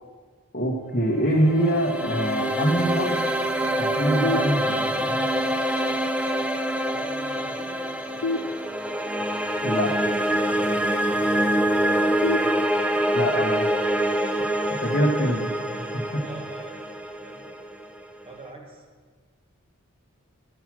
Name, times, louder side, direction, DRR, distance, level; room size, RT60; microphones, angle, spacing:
voice 1, 0.5-3.3 3.8-5.3 9.6-9.9 13.1-13.6 14.8-15.5 15.8-16.2, equal, 40° left, -5 dB, 1.2 m, -24 dB
sound 1, 1.2-18.3, right 1 dB, 5° right, 0.3 m, -25 dB
sound 2, 4.2-5.2 8.2-9.2 12.2-13.2, left 2 dB, 85° left, 0.6 m, -31 dB
voice 2, 6.9-8.3 11.2-12.7 16.2-17.6 18.2-18.8, right 1 dB, 25° right, 1 dB, 1.5 m, -44 dB
13.0 x 7.2 x 6.1 m, 1.5 s
head